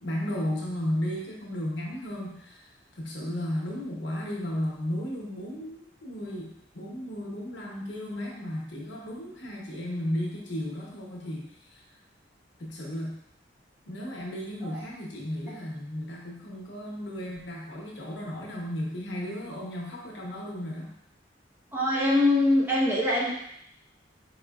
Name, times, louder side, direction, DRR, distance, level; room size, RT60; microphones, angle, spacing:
voice 1, 0.0-2.6 3.0-11.8 12.6-13.2 13.9-20.9, left 1 dB, 80° left, -2 dB, 1.0 m, -34 dB
voice 2, 21.7-23.3, left 1 dB, 10° right, -5 dB, 0.9 m, -23 dB
4.4 x 4.1 x 2.4 m, 0.74 s
head